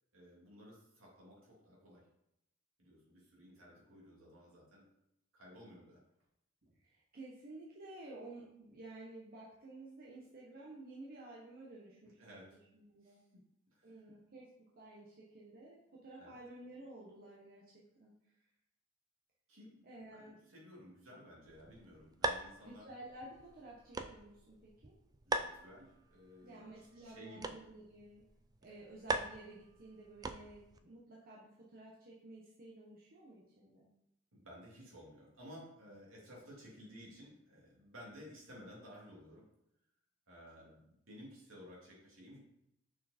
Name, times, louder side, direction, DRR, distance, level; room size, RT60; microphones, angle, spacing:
voice 1, 0.1-2.1 2.8-4.9 5.3-6.0 12.0-12.6 13.0-13.2 13.7-14.0 16.2-16.4 19.5-19.8 20.1-22.9 25.3-27.6 34.3-39.5 40.3-42.4, equal, 70° right, -4 dB, 2.5 m, -55 dB
voice 2, 6.6-13.2 13.8-14.5 14.8-18.1 19.8-20.3 22.6-24.9 26.4-28.2 28.6-33.9, right 2 dB, 45° right, -5 dB, 1.1 m, -53 dB
sound 1, 21.5-30.8, right 2 dB, 20° right, 0.3 m, -43 dB
6.1 x 4.6 x 4.3 m, 0.82 s
head